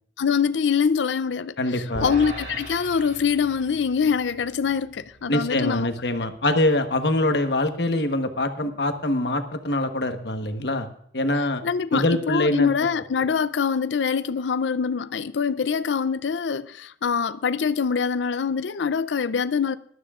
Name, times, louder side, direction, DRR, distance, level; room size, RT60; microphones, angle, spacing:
voice 1, 0.2-5.9 11.6-19.8, left 6 dB, 85° left, 0.5 m, -24 dB
voice 2, 1.6-2.1 5.3-10.9 11.1-11.6 11.9-12.7, left 1 dB, 65° left, 1.2 m, -24 dB
sound 1, 1.9-8.3, right 1 dB, 70° right, 6.2 m, -40 dB
20.5 x 12.5 x 2.4 m
head